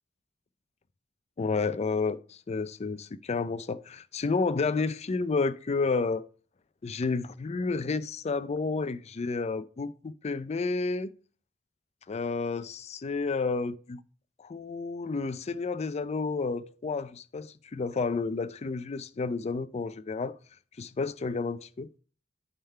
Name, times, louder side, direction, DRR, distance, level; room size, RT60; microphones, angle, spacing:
voice 1, 1.4-6.2 6.8-11.1 12.1-14.0 14.4-20.3 20.8-21.9, left 4 dB, 35° left, 0.4 m, -31 dB
8.8 x 3.6 x 5.5 m
head